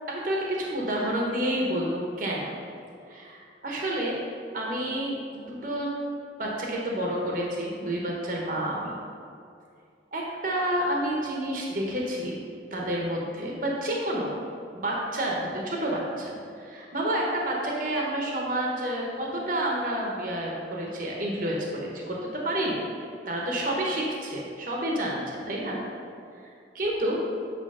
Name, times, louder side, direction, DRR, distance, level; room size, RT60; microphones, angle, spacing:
voice 1, 0.1-2.5 3.1-4.2 4.5-5.9 6.4-8.9 10.1-12.4 12.7-14.3 14.7-22.8 23.3-25.8 26.4-26.5 26.7-27.2, right 1 dB, 50° right, -2 dB, 0.9 m, -29 dB
8.6 x 3.1 x 5.4 m, 2.4 s
head